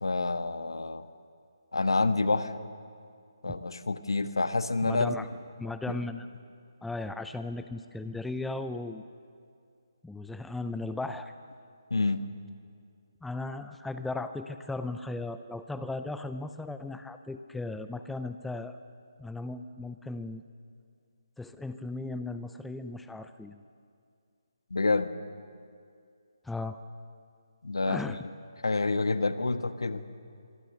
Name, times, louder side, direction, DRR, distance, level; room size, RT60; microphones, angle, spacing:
voice 1, 0.0-1.1 1.7-2.7 3.4-5.1 5.9-6.0 11.9-12.3 24.7-25.1 27.6-28.1 28.6-30.0, left 3 dB, 80° left, 11 dB, 1.3 m, -28 dB
voice 2, 4.8-5.3 5.6-6.3 6.8-9.0 10.0-11.3 13.2-18.8 19.2-20.4 21.4-23.6 26.4-26.8 27.9-28.3, left 2 dB, 5° left, 10 dB, 0.6 m, -36 dB
25.0 x 23.5 x 6.6 m, 2.3 s
figure-of-eight pair, 150°, 2 cm